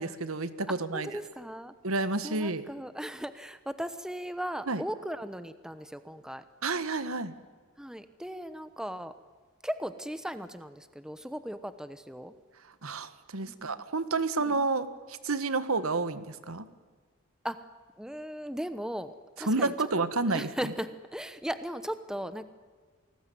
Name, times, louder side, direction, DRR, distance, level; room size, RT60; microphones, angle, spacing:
voice 1, 0.0-1.1 1.8-2.6 4.7-4.8 6.6-7.3 12.8-16.7 19.5-20.7, right 3 dB, 80° right, 13 dB, 1.6 m, -30 dB
voice 2, 0.7-1.7 2.2-6.4 7.8-9.1 9.6-12.3 13.5-13.9 14.5-14.6 17.4-17.6 18.0-19.9 20.3-22.4, equal, 5° right, 11 dB, 1.0 m, -37 dB
28.0 x 19.5 x 9.4 m, 1.5 s
head